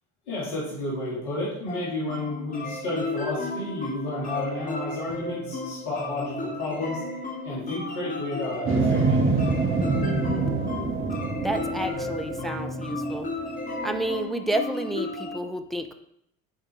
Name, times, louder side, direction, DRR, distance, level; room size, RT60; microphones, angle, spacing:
voice 1, 0.3-7.0 7.4-9.2, left 2 dB, 60° left, -5 dB, 2.2 m, -31 dB
sound 1, 1.7-15.4, left 2 dB, 20° left, 1.1 m, -34 dB
sound 2, 8.6-13.6 14.1-14.2, right 3 dB, 30° right, 1.7 m, -26 dB
voice 2, 11.4-13.3 13.8-15.9, right 1 dB, ahead, 5 dB, 0.4 m, -30 dB
9.1 x 4.3 x 3.3 m, 0.75 s
figure-of-eight pair, 65°, 42 cm